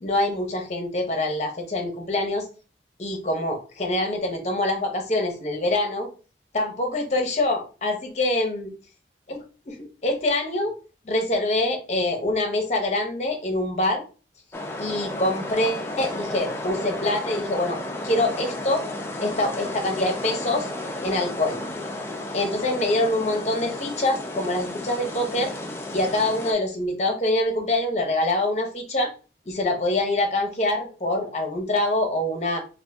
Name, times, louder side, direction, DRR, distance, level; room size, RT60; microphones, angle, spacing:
voice 1, 0.0-2.5 3.0-6.1 6.5-8.7 9.3-9.4 9.7-10.8 11.0-14.0 14.8-17.8 18.0-18.9 19.2-20.7 21.0-21.6 22.3-25.5 25.9-29.1 29.5-32.6, left 1 dB, 40° left, 3 dB, 0.7 m, -25 dB
sound 1, 14.5-26.5, left 1 dB, 15° left, 0.3 m, -33 dB
2.5 x 2.5 x 3.3 m, 0.35 s
head